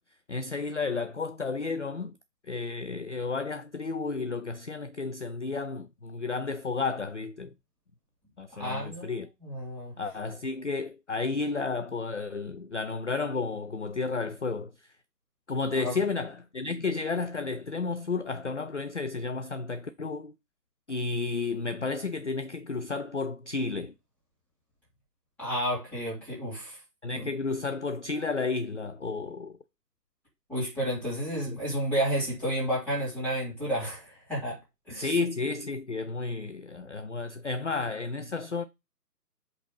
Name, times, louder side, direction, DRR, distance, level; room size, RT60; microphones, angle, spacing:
voice 1, 0.3-2.1 2.5-7.5 8.4-9.3 10.0-14.7 15.5-20.3 20.9-23.9 27.0-29.6 31.5-31.6 34.9-38.7, left 4 dB, 50° left, 0.5 m, -32 dB
voice 2, 8.5-9.9 15.8-15.9 25.4-26.8 27.1-27.3 30.5-34.6 34.9-35.2, equal, 5° left, 3.0 m, -31 dB
5.2 x 4.1 x 5.4 m
figure-of-eight pair, 150°, 49 cm